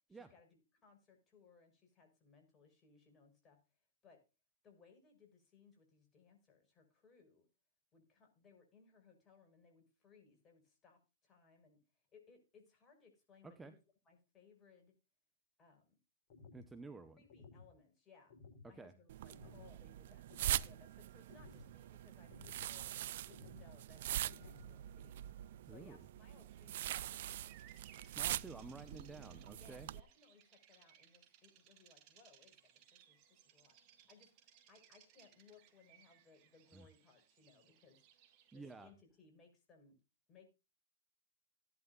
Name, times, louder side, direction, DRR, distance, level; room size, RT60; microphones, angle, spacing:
voice 1, 0.1-3.6 4.0-4.2 4.6-7.5 7.9-13.8 14.0-15.0 15.6-16.0 17.1-18.3 18.6-23.0 23.3-27.8 29.5-38.0 38.5-40.0 40.3-40.5, left 5 dB, 25° left, 4 dB, 6.0 m, -66 dB
voice 2, 13.4-13.7 16.5-17.2 18.6-18.9 25.7-26.0 28.2-29.9 36.7-36.9 38.5-38.9, right 3 dB, 10° right, 9 dB, 1.0 m, -52 dB
sound 1, 16.3-16.7 17.3-17.7 18.3-18.7 19.3-19.7 20.3-20.7 21.3-21.7 22.3-22.7 23.3-23.7 24.3-24.7, left 4 dB, 50° left, 4.7 m, -57 dB
sound 2, 19.1-30.0, right 13 dB, 60° right, 0.5 m, -43 dB
Bird vocalization bird call bird song, 26.2-38.9, right 10 dB, 40° right, 2.5 m, -66 dB
16.5 x 11.0 x 2.5 m, 0.29 s
hypercardioid pair, 115°, 0 cm